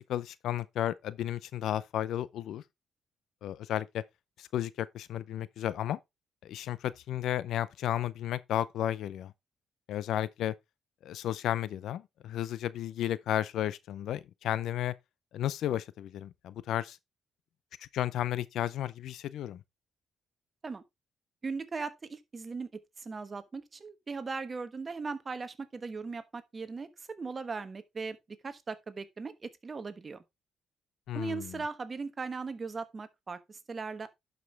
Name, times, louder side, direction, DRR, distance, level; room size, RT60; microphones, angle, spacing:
voice 1, 0.0-2.6 3.4-4.0 4.4-6.0 6.4-9.3 9.9-10.5 11.0-14.9 15.3-17.0 17.8-19.6 31.1-31.6, left 12 dB, 80° left, 0.5 m, -33 dB
voice 2, 21.4-28.2 28.4-30.2 31.1-34.1, right 4 dB, 35° right, 1.2 m, -38 dB
11.0 x 5.3 x 3.3 m
cardioid pair, 90°, 0 cm